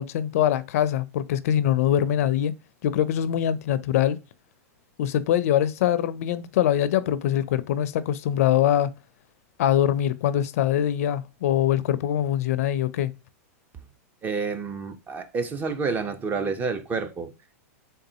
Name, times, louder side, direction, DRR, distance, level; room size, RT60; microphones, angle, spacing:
voice 1, 0.0-2.5 2.8-4.2 5.0-8.9 9.6-13.1, left 11 dB, 70° left, 0.4 m, -23 dB
voice 2, 14.2-17.3, right 4 dB, 20° right, 0.5 m, -29 dB
3.9 x 3.4 x 2.7 m
hypercardioid pair, 125°, 8 cm